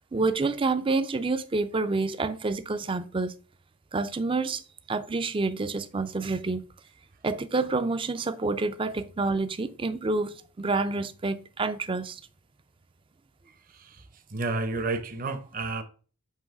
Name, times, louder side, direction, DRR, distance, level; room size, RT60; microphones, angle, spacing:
voice 1, 0.1-3.3 3.9-4.6 4.9-6.6 7.2-12.2, right 3 dB, 25° right, 0.4 m, -28 dB
voice 2, 14.3-15.8, right 3 dB, 40° right, 0.7 m, -30 dB
7.5 x 3.1 x 4.6 m
head